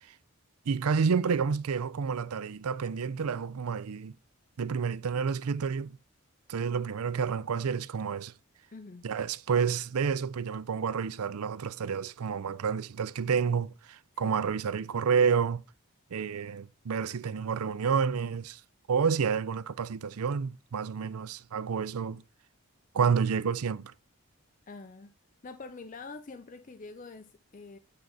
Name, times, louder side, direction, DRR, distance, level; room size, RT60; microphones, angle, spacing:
voice 1, 0.7-4.2 4.6-6.0 6.5-8.3 9.0-15.6 16.1-18.6 18.9-22.2 22.9-23.9, right 6 dB, 85° right, 0.5 m, -29 dB
voice 2, 8.7-9.1 14.2-14.4 24.7-25.1 25.4-27.8, left 3 dB, 35° left, 0.5 m, -45 dB
8.9 x 4.0 x 4.7 m
head